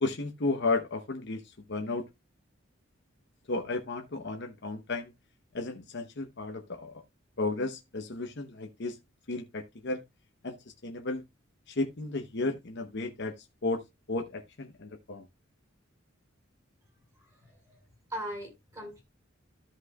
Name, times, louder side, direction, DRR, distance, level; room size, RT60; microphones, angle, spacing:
voice 1, 0.0-2.1 3.5-5.1 5.5-6.9 7.4-9.0 9.3-10.0 10.4-10.6 10.8-11.2 11.7-13.8 14.1-15.2, left 3 dB, 60° left, 0.9 m, -33 dB
voice 2, 17.1-19.0, equal, 20° right, 4.4 m, -41 dB
13.5 x 5.5 x 2.3 m
head